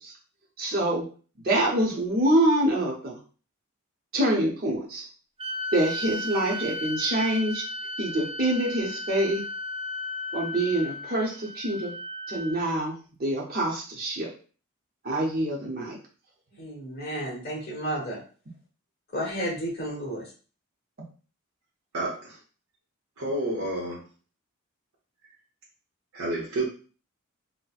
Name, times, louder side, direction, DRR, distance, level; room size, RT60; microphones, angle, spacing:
voice 1, 0.6-1.0 1.4-3.2 4.1-5.0 5.7-7.6 8.0-9.4 10.3-11.9 12.3-14.3 15.0-16.0, right 1 dB, 45° right, -2 dB, 0.7 m, -25 dB
sound 1, 5.4-12.9, left 1 dB, 30° right, 0.3 m, -35 dB
voice 2, 16.6-18.2 19.1-20.3, equal, 45° left, -3 dB, 1.3 m, -32 dB
voice 3, 21.9-22.4 23.2-24.0 26.1-26.6, right 1 dB, 80° right, -4 dB, 0.8 m, -29 dB
4.0 x 2.1 x 2.3 m, 0.37 s
head